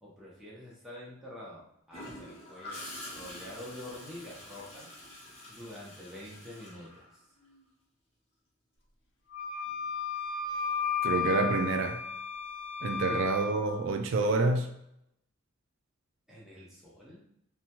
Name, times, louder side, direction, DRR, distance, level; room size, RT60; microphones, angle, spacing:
voice 1, 0.0-5.0 5.5-7.1 13.0-13.2 16.3-17.2, left 1 dB, ahead, 0.7 m, -47 dB
Gurgling / Toilet flush, 1.9-7.6 9.7-9.9, left 1 dB, 30° left, 0.8 m, -46 dB
Wind instrument woodwind instrument, 9.3-13.6, left 6 dB, 70° left, 0.5 m, -33 dB
voice 2, 11.0-12.0 12.8-14.7, right 3 dB, 75° right, 0.3 m, -28 dB
2.8 x 2.2 x 2.8 m
head